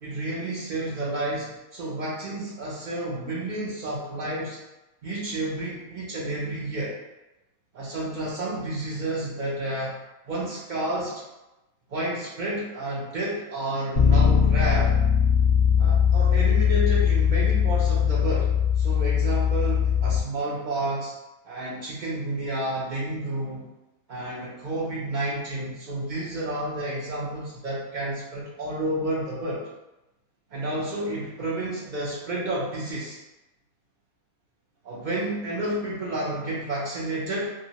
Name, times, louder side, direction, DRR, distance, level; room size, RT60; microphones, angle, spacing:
voice 1, 0.0-4.6 5.0-7.0 7.7-9.9 10.3-11.2 11.9-15.0 15.8-18.5 18.8-21.1 21.4-23.7 24.1-29.7 30.5-33.2 34.8-37.5, right 1 dB, 85° right, -6 dB, 0.4 m, -30 dB
Bass guitar, 13.9-20.2, left 7 dB, 55° left, 0.8 m, -20 dB
2.9 x 2.9 x 2.8 m, 1.0 s
omnidirectional pair, 1.6 m